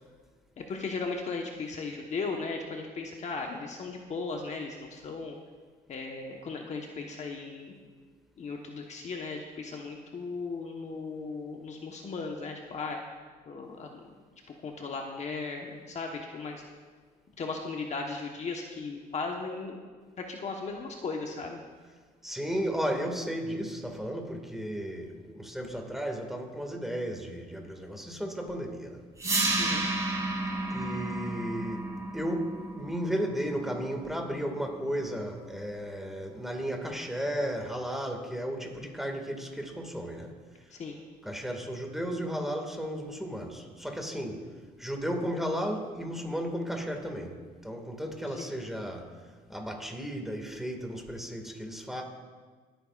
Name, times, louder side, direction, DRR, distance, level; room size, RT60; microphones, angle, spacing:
voice 1, 0.6-5.4 5.9-7.8 8.4-13.0 13.5-14.1 14.6-16.6 17.4-19.9 20.2-21.6 29.6-29.8 40.7-41.0 48.3-48.5, left 4 dB, 45° left, 2 dB, 1.1 m, -37 dB
voice 2, 22.2-29.0 30.7-31.9 32.1-40.3 41.2-44.4 44.8-47.3 47.6-49.1 49.5-52.0, equal, ahead, 2 dB, 1.9 m, -34 dB
sound 1, 29.2-35.2, right 2 dB, 20° right, 2.7 m, -32 dB
27.0 x 9.1 x 2.5 m, 1.5 s
cardioid pair, 110°, 17 cm